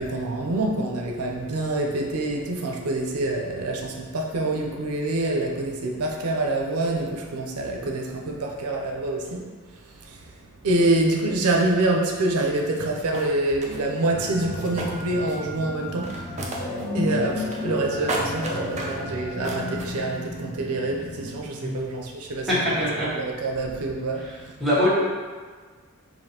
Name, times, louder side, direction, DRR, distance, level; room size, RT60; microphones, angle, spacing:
voice 1, 0.0-9.4 9.7-16.6 16.9-22.5 23.0-24.6, right 2 dB, 90° right, 0 dB, 0.5 m, -26 dB
sound 1, 13.1-13.8 14.4-15.5 15.8-16.8 17.1-17.8 18.1-19.0 19.4-19.9, right 1 dB, 30° right, 0.5 m, -33 dB
sound 2, 14.1-21.4, left 2 dB, 30° left, 0.6 m, -33 dB
voice 2, 22.5-23.1 24.6-24.9, left 1 dB, ahead, -11 dB, 1.3 m, -22 dB
5.1 x 2.6 x 2.8 m, 1.5 s
head